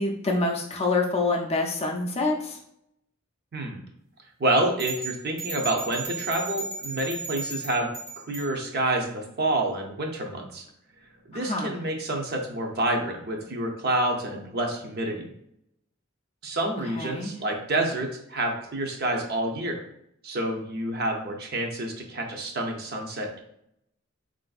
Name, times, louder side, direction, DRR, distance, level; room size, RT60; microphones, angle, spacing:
voice 1, 0.0-2.6 11.3-11.7 17.0-17.3, left 3 dB, 30° left, 2 dB, 0.4 m, -26 dB
voice 2, 4.4-7.9 8.3-10.6 11.3-15.3 16.4-19.8 20.2-23.4, right 1 dB, 50° right, 2 dB, 0.6 m, -28 dB
sound 1, 4.8-8.5, right 3 dB, 85° right, 1.2 m, -35 dB
3.9 x 2.5 x 2.3 m, 0.74 s
head